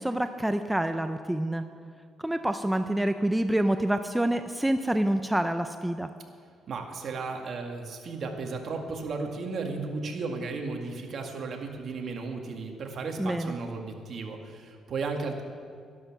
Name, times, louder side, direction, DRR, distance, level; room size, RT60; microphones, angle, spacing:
voice 1, 0.0-1.6 2.2-6.1 13.2-13.5, right 1 dB, 5° right, 8 dB, 0.6 m, -27 dB
voice 2, 6.7-15.4, right 4 dB, 55° right, 3 dB, 1.9 m, -34 dB
12.5 x 12.0 x 6.0 m, 2.1 s
cardioid pair, 90°, 0 cm